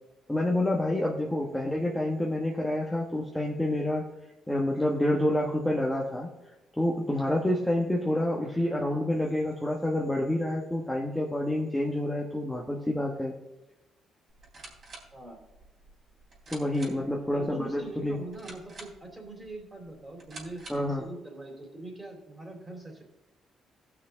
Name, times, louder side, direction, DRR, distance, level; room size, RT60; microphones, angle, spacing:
voice 1, 0.3-4.1 4.5-6.3 6.8-13.3 16.5-18.2 20.7-21.1, left 1 dB, 5° left, -2 dB, 1.3 m, -28 dB
sound 1, 14.3-21.0, right 2 dB, 45° right, 3.5 m, -50 dB
voice 2, 17.3-23.0, right 2 dB, 15° right, 1 dB, 3.3 m, -43 dB
17.0 x 6.0 x 3.9 m, 1.0 s
cardioid pair, 90°, 0 cm